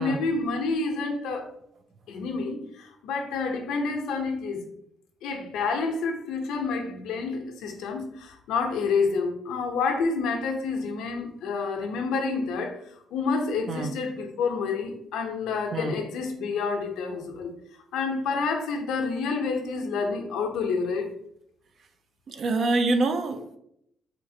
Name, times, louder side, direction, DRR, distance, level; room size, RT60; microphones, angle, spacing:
voice 1, 0.0-1.5 2.1-4.6 5.2-12.8 13.1-17.5 17.9-21.1, left 4 dB, 90° left, 3 dB, 0.6 m, -28 dB
voice 2, 22.3-23.6, right 2 dB, 55° right, 7 dB, 0.5 m, -26 dB
4.4 x 2.4 x 2.7 m, 0.74 s
cardioid pair, 90°, 0 cm